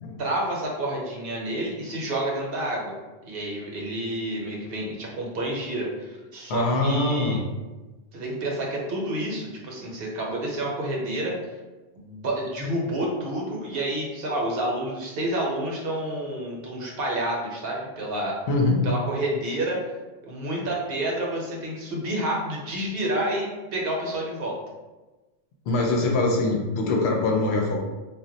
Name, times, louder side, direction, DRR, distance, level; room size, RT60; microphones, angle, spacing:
voice 1, 0.2-2.9 3.2-7.4 8.1-11.4 12.0-18.4 18.8-19.8 20.2-24.6, right 1 dB, 70° right, -1 dB, 0.9 m, -29 dB
voice 2, 6.5-7.4 18.5-18.9 25.7-27.8, left 2 dB, 85° left, 0 dB, 0.9 m, -23 dB
2.2 x 2.1 x 3.8 m, 1.2 s
omnidirectional pair, 1.1 m